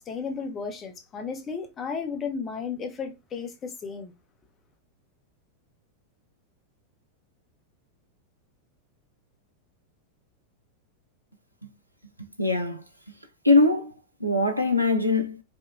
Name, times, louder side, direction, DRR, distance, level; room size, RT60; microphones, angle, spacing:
voice 1, 0.0-4.1, left 5 dB, 25° left, 0.8 m, -34 dB
voice 2, 12.2-12.8 13.4-13.9 14.2-15.4, left 3 dB, 90° right, 0.4 m, -22 dB
5.2 x 2.2 x 2.5 m
figure-of-eight pair, 90°, 0 cm